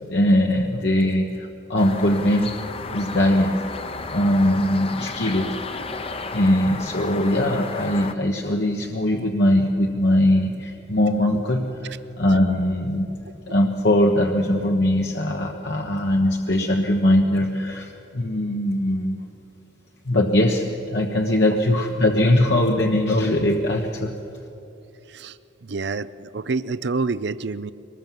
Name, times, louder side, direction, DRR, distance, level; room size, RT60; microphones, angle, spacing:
voice 1, 0.1-2.5 2.9-3.5 4.1-5.9 6.3-13.1 13.5-19.2 20.1-24.1, left 1 dB, 65° left, 1 dB, 1.3 m, -21 dB
sound 1, 1.8-8.1, left 3 dB, 30° left, 0.9 m, -33 dB
voice 2, 25.6-27.7, right 4 dB, 60° right, 15 dB, 0.5 m, -27 dB
23.0 x 20.0 x 7.5 m, 2.9 s
head